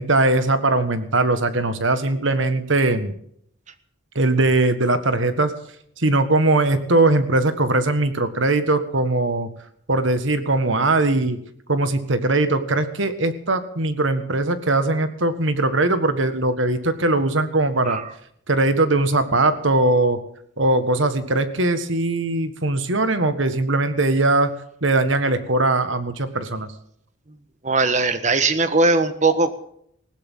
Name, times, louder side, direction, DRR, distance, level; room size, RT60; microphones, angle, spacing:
voice 1, 0.0-3.1 4.2-5.5 6.0-9.5 9.9-11.4 11.7-18.0 18.5-20.2 20.6-24.5 24.8-26.7, right 2 dB, 65° right, 11 dB, 1.7 m, -20 dB
voice 2, 27.6-29.6, right 3 dB, 35° right, 11 dB, 1.4 m, -19 dB
19.5 x 16.5 x 3.8 m, 0.68 s
head